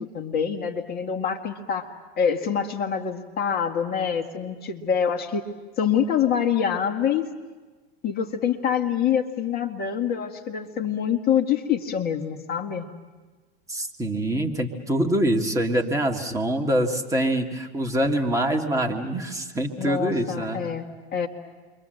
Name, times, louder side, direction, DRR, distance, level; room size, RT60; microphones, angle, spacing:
voice 1, 0.0-1.9 2.2-5.5 5.8-7.3 8.0-12.9 19.8-21.3, left 8 dB, 30° left, 5 dB, 2.1 m, -25 dB
voice 2, 13.7-20.7, right 1 dB, 10° right, 1 dB, 1.9 m, -25 dB
29.0 x 24.0 x 7.8 m, 1.3 s
supercardioid pair, 125°, 30 cm